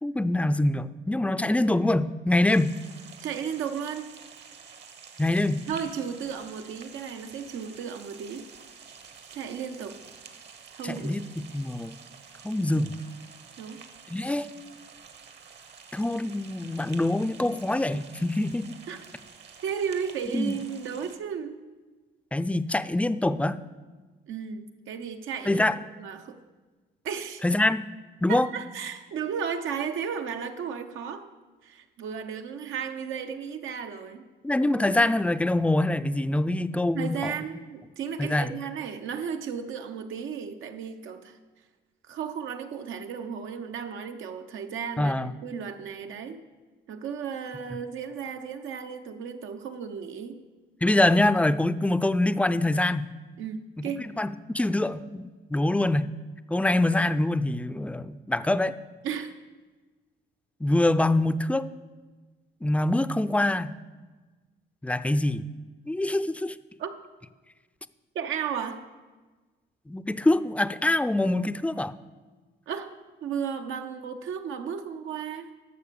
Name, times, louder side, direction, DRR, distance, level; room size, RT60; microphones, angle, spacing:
voice 1, 0.0-2.7 5.2-5.6 10.8-11.9 12.4-12.9 14.1-14.5 15.9-18.7 20.3-20.6 22.3-23.6 25.5-25.8 27.4-27.8 28.2-28.5 34.4-37.3 38.2-38.5 45.0-45.3 50.8-53.1 53.8-56.1 56.5-58.8 60.6-61.7 62.6-63.8 64.8-65.4 65.9-66.6 69.9-71.9, left 1 dB, 5° left, 13 dB, 0.4 m, -25 dB
sound 1, 2.5-21.2, right 6 dB, 60° right, 1.3 m, -49 dB
voice 2, 3.2-4.1 5.7-8.5 9.3-10.0 10.7-11.2 13.6-13.8 18.9-19.0 19.6-21.6 24.3-26.4 27.0-27.4 28.3-31.3 31.6-34.2 36.9-41.4 42.1-46.4 46.9-50.4 53.4-54.1 59.0-59.3 66.8-66.9 68.1-68.8 72.7-72.9 73.2-75.5, right 7 dB, 80° right, 6 dB, 1.0 m, -34 dB
12.0 x 6.6 x 6.9 m, 1.3 s
cardioid pair, 90°, 20 cm